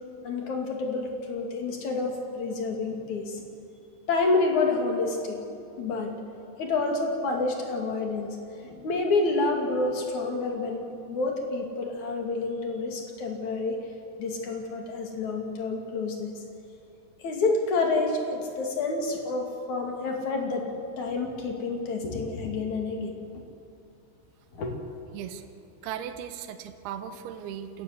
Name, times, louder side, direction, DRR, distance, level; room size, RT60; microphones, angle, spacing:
voice 1, 0.2-3.4 4.1-5.4 5.8-6.1 6.6-8.4 8.6-13.8 14.2-16.3 17.2-20.7 21.0-23.1 24.5-24.7, left 3 dB, 50° left, 2 dB, 3.6 m, -28 dB
voice 2, 25.1-27.8, right 9 dB, 85° right, 9 dB, 3.0 m, -38 dB
26.5 x 15.0 x 8.2 m, 2.7 s
omnidirectional pair, 4.5 m